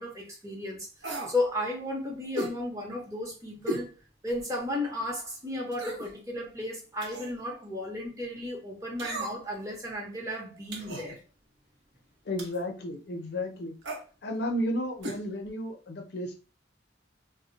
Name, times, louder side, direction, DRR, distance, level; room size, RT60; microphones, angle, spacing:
voice 1, 0.0-3.9 4.2-11.1, left 1 dB, 15° right, 0.7 m, -34 dB
sound 1, 1.0-1.4 2.4-2.6 3.7-3.9 4.4-4.5 5.7-6.1 7.0-7.4 9.0-9.6 10.7-11.1 12.4-12.7 13.8-14.0 15.0-15.2 15.5-15.6, right 1 dB, 80° right, 0.8 m, -35 dB
voice 2, 12.3-13.7 14.2-16.3, left 1 dB, 60° left, 0.5 m, -33 dB
2.1 x 2.1 x 3.8 m
head